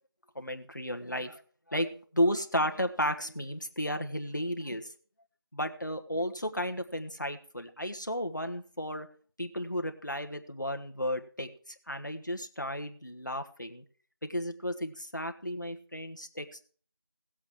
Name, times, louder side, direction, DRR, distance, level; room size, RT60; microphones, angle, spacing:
voice 1, 0.3-1.4 1.7-4.9 5.5-9.1 9.4-11.5 11.9-13.8 14.2-16.7, equal, 50° left, 5 dB, 1.4 m, -33 dB
17.5 x 8.1 x 4.8 m, 0.43 s
figure-of-eight pair, 180°, 13 cm